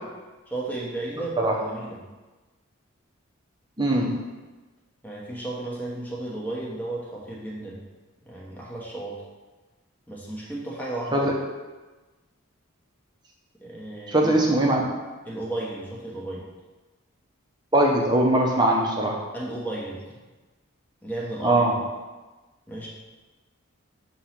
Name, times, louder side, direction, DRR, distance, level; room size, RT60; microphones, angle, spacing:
voice 1, 0.5-2.0 5.0-7.8 8.2-9.2 10.1-11.3 13.6-14.3 15.3-16.5 19.3-20.0 21.0-21.8 22.7-22.9, right 2 dB, 10° left, -5 dB, 1.1 m, -34 dB
voice 2, 3.8-4.3 11.1-11.3 14.1-14.8 17.7-19.2 21.4-21.8, right 1 dB, 20° right, -1 dB, 0.8 m, -21 dB
6.5 x 3.1 x 5.8 m, 1.2 s
head